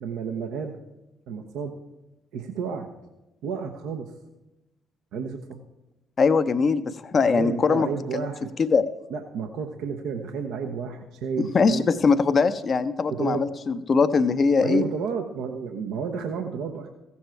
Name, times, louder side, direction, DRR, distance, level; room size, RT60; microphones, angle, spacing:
voice 1, 0.0-0.8 1.3-1.8 2.3-2.9 3.4-4.1 5.1-5.5 7.2-8.5 9.1-11.9 13.1-13.5 14.6-16.9, right 6 dB, 70° right, 5 dB, 0.8 m, -31 dB
voice 2, 6.2-8.2 8.6-8.8 11.4-14.8, left 4 dB, 45° left, 11 dB, 0.6 m, -21 dB
15.5 x 7.2 x 4.5 m, 1.0 s
hypercardioid pair, 50°, 0 cm